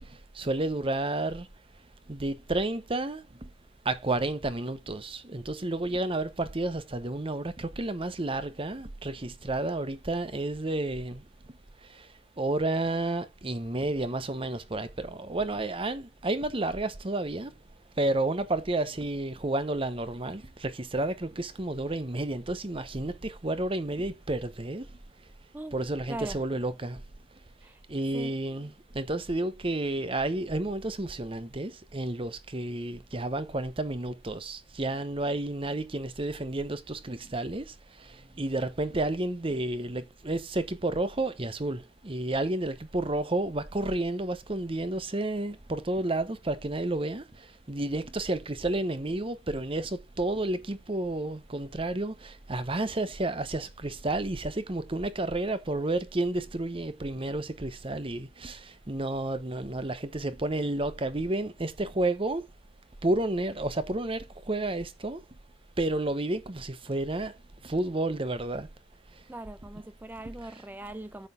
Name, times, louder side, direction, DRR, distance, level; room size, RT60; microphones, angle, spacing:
voice 1, 0.3-1.5 2.1-3.5 3.8-11.2 12.4-17.5 18.0-24.9 25.7-27.0 27.9-37.7 38.0-47.2 47.7-62.4 63.0-65.2 65.8-67.3 67.6-68.7, right 2 dB, 30° right, 0.9 m, -31 dB
voice 2, 26.1-26.4 27.6-27.8 28.1-28.4 69.3-71.3, right 1 dB, 10° right, 0.4 m, -40 dB
9.8 x 7.8 x 3.6 m
head